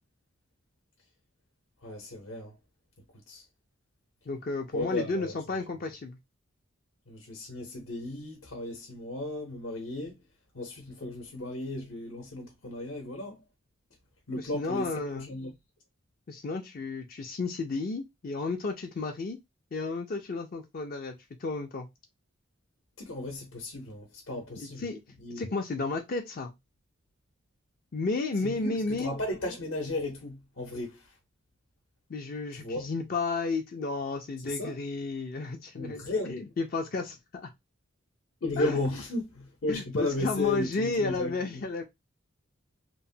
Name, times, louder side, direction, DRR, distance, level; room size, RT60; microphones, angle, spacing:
voice 1, 1.8-2.5 3.3-3.4 4.7-5.3 7.1-10.2 10.5-13.4 14.3-15.5 23.0-24.8 25.2-25.5 28.4-31.0 32.6-32.9 34.4-34.7 35.8-36.4 38.4-41.6, left 2 dB, 70° left, 0.8 m, -34 dB
voice 2, 4.3-6.2 14.4-15.3 16.3-19.4 19.7-21.9 24.6-25.0 25.4-26.5 27.9-29.1 32.1-37.5 38.6-38.8 39.7-41.8, left 3 dB, 45° left, 0.4 m, -32 dB
3.0 x 2.1 x 2.6 m
head